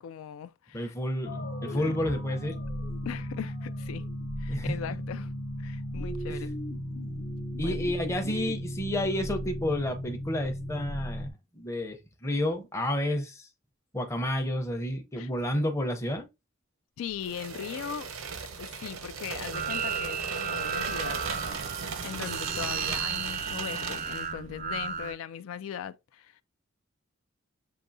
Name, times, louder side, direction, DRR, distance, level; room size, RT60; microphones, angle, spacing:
voice 1, 0.0-0.9 1.7-1.9 3.1-4.1 4.4-5.3 5.6-6.5 7.6-7.8 15.2-15.3 17.0-18.1 18.6-21.2 22.0-26.4, left 8 dB, 80° left, 0.3 m, -39 dB
voice 2, 0.7-2.6 4.5-4.9 6.3-6.4 7.6-13.5 13.9-16.3, left 1 dB, 15° left, 0.6 m, -31 dB
sound 1, 1.3-11.3, equal, 50° left, 0.7 m, -35 dB
sound 2, 17.2-24.3, right 5 dB, 85° right, 0.7 m, -37 dB
sound 3, 19.5-25.1, right 6 dB, 40° right, 0.4 m, -34 dB
6.6 x 2.7 x 2.6 m
head